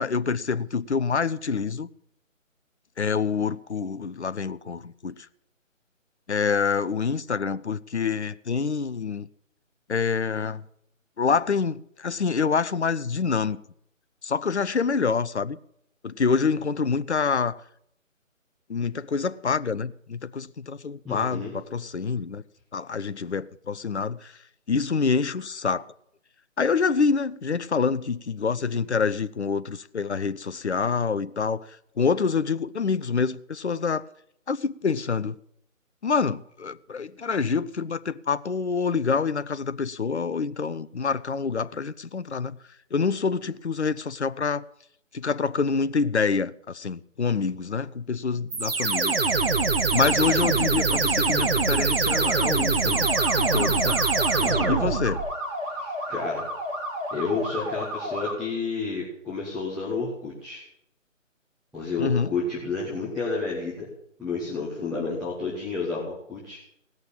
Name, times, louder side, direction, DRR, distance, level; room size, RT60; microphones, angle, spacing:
voice 1, 0.0-1.9 3.0-5.1 6.3-9.3 9.9-10.6 11.2-13.6 14.2-15.6 16.0-17.6 18.7-22.4 22.7-24.3 24.7-25.8 26.6-31.7 32.0-34.0 34.5-35.3 36.0-42.6 42.9-44.6 45.1-49.2 49.9-53.1 53.4-54.0 54.7-55.2 62.0-62.3, left 5 dB, 55° left, 0.7 m, -26 dB
voice 2, 21.0-21.5 54.4-54.8 55.7-56.4 57.1-60.6 61.7-63.9 64.2-66.6, left 4 dB, ahead, 1.4 m, -30 dB
sound 1, 48.5-55.3, right 4 dB, 45° right, 1.1 m, -23 dB
sound 2, 52.9-58.3, equal, 30° right, 5.1 m, -32 dB
18.0 x 6.6 x 8.8 m
figure-of-eight pair, 150°, 39 cm